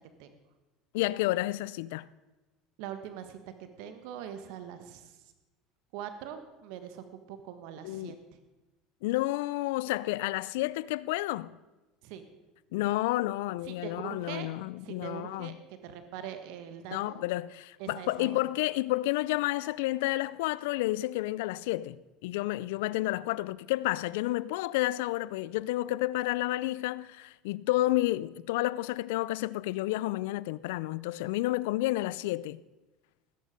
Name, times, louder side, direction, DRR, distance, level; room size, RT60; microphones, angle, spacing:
voice 1, 0.9-2.1 7.8-8.2 9.0-11.6 12.7-15.6 16.9-22.0 22.2-32.6, left 17 dB, 80° left, 0.4 m, -30 dB
voice 2, 2.8-5.3 5.9-8.4 12.0-12.3 13.6-14.5 14.8-17.3 17.8-18.4, right 9 dB, 70° right, 1.4 m, -43 dB
19.0 x 10.0 x 5.2 m
supercardioid pair, 90°, 0 cm